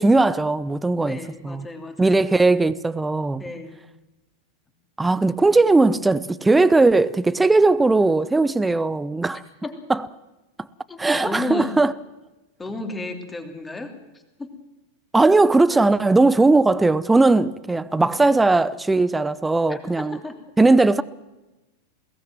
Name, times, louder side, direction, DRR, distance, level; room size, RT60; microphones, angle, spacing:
voice 1, 0.0-1.2 1.4-1.7 2.0-3.4 5.0-9.4 9.9-10.1 11.0-11.9 15.1-20.2 20.6-21.0, right 3 dB, 10° right, 0.7 m, -18 dB
voice 2, 1.0-2.2 3.4-3.8 9.6-9.8 10.9-11.8 12.6-14.0 14.4-14.6 15.7-15.8 18.0-18.2 19.7-20.4, left 2 dB, 10° left, 3.1 m, -33 dB
21.5 x 18.0 x 7.6 m
figure-of-eight pair, 90°, 0 cm